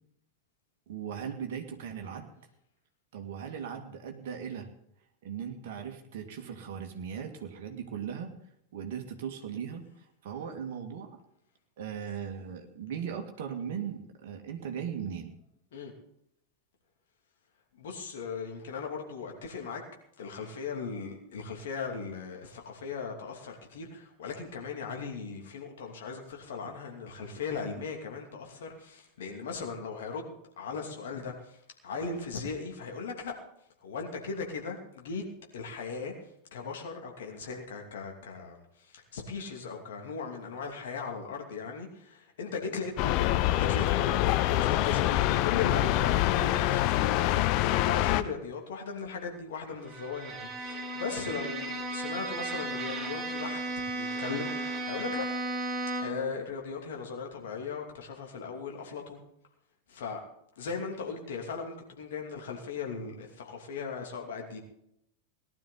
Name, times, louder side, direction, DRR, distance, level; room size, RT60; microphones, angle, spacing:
voice 1, 0.9-2.3 3.1-4.7 5.2-8.3 8.7-9.8 10.2-11.2 11.8-15.3, right 7 dB, 55° right, 4 dB, 2.2 m, -38 dB
voice 2, 17.7-19.8 20.2-33.3 33.8-35.2 35.5-36.1 36.5-53.6 53.9-55.2 56.0-59.2 59.9-60.2 60.6-64.6, left 5 dB, 60° left, 2 dB, 2.8 m, -38 dB
sound 1, 43.0-48.2, left 14 dB, 45° left, 0.6 m, -25 dB
Bowed string instrument, 49.8-56.3, right 2 dB, 20° right, 3.7 m, -35 dB
18.5 x 12.0 x 4.2 m, 0.76 s
figure-of-eight pair, 90°, 0 cm